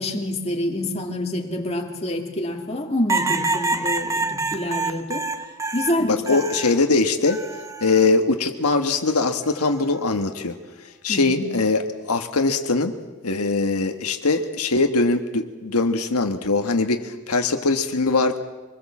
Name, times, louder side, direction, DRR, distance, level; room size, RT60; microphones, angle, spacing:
voice 1, 0.0-5.3 5.7-6.4 11.1-11.4, left 1 dB, 30° left, 2 dB, 2.4 m, -27 dB
sound 1, 3.1-6.8 7.3-8.1 9.4-9.8, right 3 dB, 15° right, 0.8 m, -27 dB
voice 2, 6.0-7.4 7.8-10.5 11.0-12.9 13.2-18.4, left 3 dB, 85° left, 5 dB, 1.5 m, -21 dB
25.0 x 20.5 x 7.3 m, 1.2 s
head